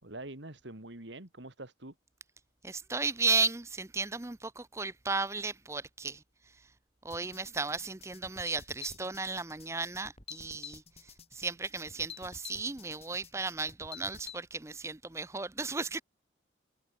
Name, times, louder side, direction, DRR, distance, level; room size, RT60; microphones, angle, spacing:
voice 1, 0.0-1.9, right 2 dB, 75° right, 2.9 m, -45 dB
voice 2, 2.6-6.2 7.0-16.0, right 4 dB, 15° right, 0.6 m, -34 dB
sound 1, 7.1-14.4, left 7 dB, 35° left, 5.9 m, -49 dB
head